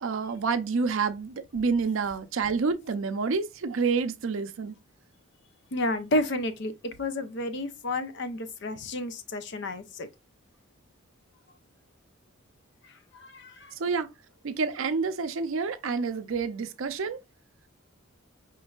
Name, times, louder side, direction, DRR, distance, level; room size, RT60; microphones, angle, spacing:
voice 1, 0.0-4.7 13.8-14.1 14.4-17.2, right 5 dB, 75° right, 0.5 m, -28 dB
voice 2, 5.7-6.7 7.0-10.1 13.1-13.7, left 1 dB, 55° left, 0.5 m, -31 dB
4.4 x 3.1 x 2.3 m
head